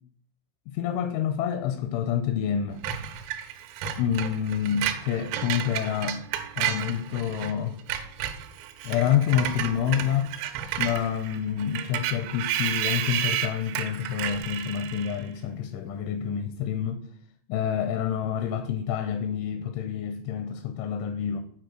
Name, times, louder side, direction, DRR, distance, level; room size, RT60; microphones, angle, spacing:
voice 1, 0.7-2.8 4.0-6.2 6.6-7.8 8.8-10.3 10.8-17.0 17.5-21.4, left 9 dB, 85° left, 2.7 m, -28 dB
Screech, 2.8-7.5 7.8-15.3, right 10 dB, 85° right, 3.4 m, -32 dB
9.2 x 4.1 x 6.3 m
omnidirectional pair, 6.0 m